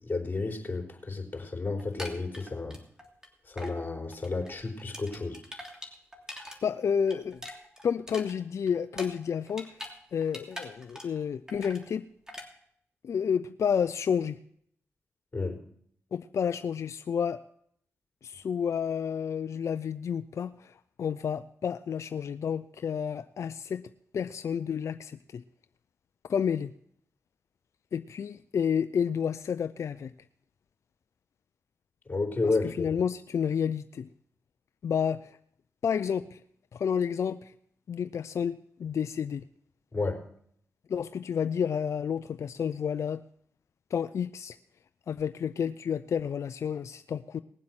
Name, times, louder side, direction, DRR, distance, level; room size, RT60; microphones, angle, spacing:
voice 1, 0.0-2.8 3.5-5.4 15.3-15.6 32.1-32.9 39.9-40.2, left 3 dB, 35° left, 1 dB, 4.1 m, -31 dB
sound 1, 1.8-3.3 3.6-3.8 4.1-6.6 6.9-10.0 10.2-11.2 11.5-11.8 12.3-12.5, equal, 10° right, 3.0 m, -43 dB
voice 2, 6.6-7.4 7.8-9.8 10.1-12.1 13.0-14.4 16.1-17.4 18.2-23.8 24.1-25.4 26.3-26.7 27.9-30.1 32.4-34.1 34.8-35.3 35.8-36.4 36.7-37.5 37.9-39.4 40.9-43.2 43.9-44.6 45.1-47.4, left 7 dB, 65° left, 11 dB, 0.4 m, -30 dB
19.5 x 7.5 x 5.8 m, 0.67 s
cardioid pair, 50°, 5 cm